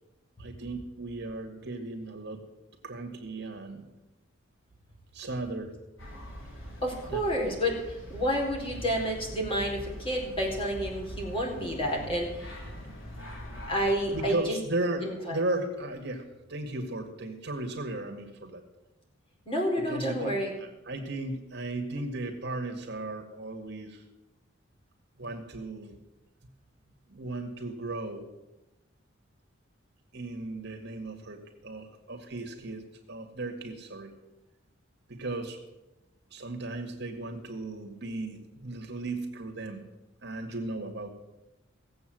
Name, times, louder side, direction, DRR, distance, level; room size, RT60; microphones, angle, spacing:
voice 1, 0.4-2.4 2.8-3.9 5.1-5.7 7.1-7.5 14.1-18.6 19.9-24.0 25.2-26.0 27.1-28.3 30.1-34.1 35.1-35.6 36.3-39.8 40.2-41.1, right 2 dB, 60° right, 3 dB, 2.1 m, -36 dB
sound 1, 6.0-14.3, equal, 85° left, 4.2 m, -43 dB
voice 2, 6.8-12.6 13.6-14.6 15.0-15.4 19.4-20.5, equal, 30° left, -1 dB, 4.6 m, -30 dB
17.5 x 7.9 x 7.7 m, 0.99 s
head